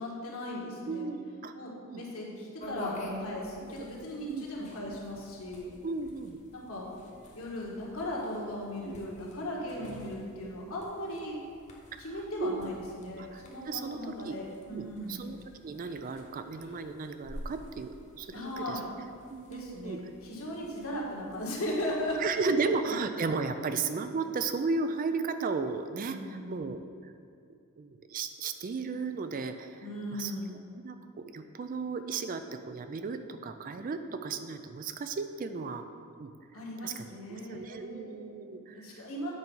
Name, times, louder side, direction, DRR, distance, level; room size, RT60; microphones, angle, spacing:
voice 1, 0.0-1.1 1.5-5.7 6.5-6.9 7.3-11.4 12.0-15.2 18.3-18.9 19.5-22.5 26.0-26.6 29.8-30.6 36.5-38.1 38.5-39.3, left 1 dB, 70° left, -4 dB, 1.6 m, -37 dB
voice 2, 0.9-1.5 1.9-2.0 3.6-3.7 4.3-4.5 5.8-6.4 8.9-9.0 11.9-12.7 13.2-14.0 14.2-14.4 14.7-15.4 15.6-18.8 19.3-20.0 22.2-26.8 27.8-30.6 30.8-35.9 36.2-36.3 36.8-38.9, right 4 dB, 40° right, 9 dB, 0.3 m, -35 dB
sound 1, 2.6-22.3, left 1 dB, 30° left, 1.0 m, -49 dB
8.1 x 4.5 x 5.4 m, 2.3 s
head